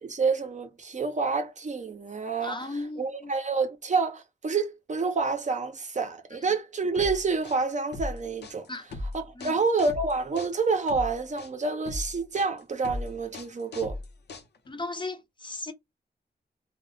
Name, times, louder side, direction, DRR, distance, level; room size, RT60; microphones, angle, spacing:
voice 1, 0.0-8.7 9.1-14.0, right 4 dB, 45° right, 0.5 m, -28 dB
voice 2, 2.4-3.3 8.7-8.9 9.4-9.5 14.7-15.7, left 2 dB, 30° left, 0.5 m, -36 dB
sound 1, 6.9-14.8, left 1 dB, 80° left, 0.6 m, -37 dB
2.1 x 2.0 x 3.7 m
wide cardioid pair, 135°, 17 cm